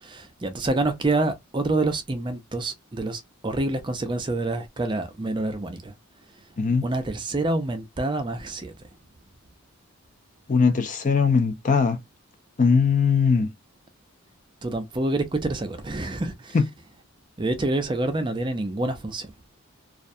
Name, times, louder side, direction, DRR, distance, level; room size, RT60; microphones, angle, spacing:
voice 1, 0.0-5.9 6.8-8.7 14.6-16.6 17.4-19.3, right 2 dB, 20° right, 0.4 m, -27 dB
voice 2, 10.5-12.0 12.6-13.5 16.5-16.6, left 5 dB, 35° left, 0.4 m, -20 dB
2.4 x 2.2 x 2.6 m
head